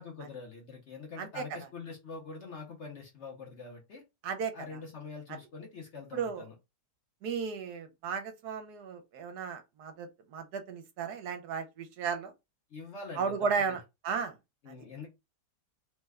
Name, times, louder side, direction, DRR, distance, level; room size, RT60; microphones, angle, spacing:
voice 1, 0.0-4.0 4.5-6.5 12.7-13.8 14.6-15.1, left 4 dB, 55° left, 0.9 m, -44 dB
voice 2, 6.1-6.4 7.2-12.3 13.2-14.3 14.7-14.8, right 6 dB, 75° right, 1.2 m, -34 dB
3.2 x 2.1 x 3.4 m
omnidirectional pair, 1.8 m